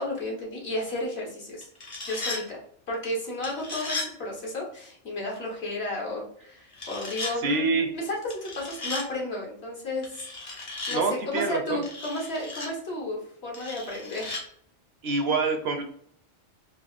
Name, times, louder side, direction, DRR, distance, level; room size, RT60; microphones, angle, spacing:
voice 1, 0.0-1.7 2.0-2.6 2.9-14.4, left 1 dB, 60° left, -2 dB, 1.5 m, -33 dB
sound 1, 1.6-2.4 3.4-4.1 6.7-7.3 8.3-9.1 10.0-11.0 11.8-12.7 13.5-14.4, left 2 dB, 40° left, 1.0 m, -35 dB
voice 2, 7.4-7.9 10.9-11.8 15.0-15.8, right 4 dB, 65° right, 5 dB, 0.8 m, -26 dB
4.1 x 2.6 x 2.4 m, 0.65 s
omnidirectional pair, 1.2 m